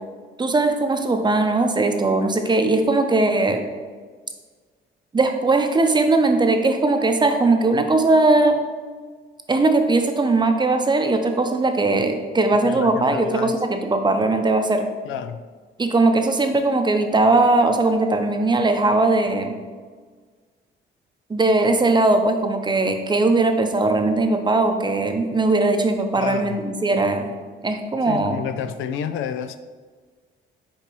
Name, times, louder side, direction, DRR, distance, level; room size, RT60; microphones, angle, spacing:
voice 1, 0.4-3.6 5.1-8.6 9.5-14.9 15.8-19.5 21.3-27.3 27.6-28.4, right 2 dB, 20° right, 6 dB, 0.7 m, -19 dB
voice 2, 12.6-13.6 15.1-15.4 26.2-26.6 28.1-29.6, left 8 dB, 85° left, 11 dB, 0.4 m, -30 dB
6.9 x 4.6 x 3.0 m, 1.5 s
cardioid pair, 90°, 20 cm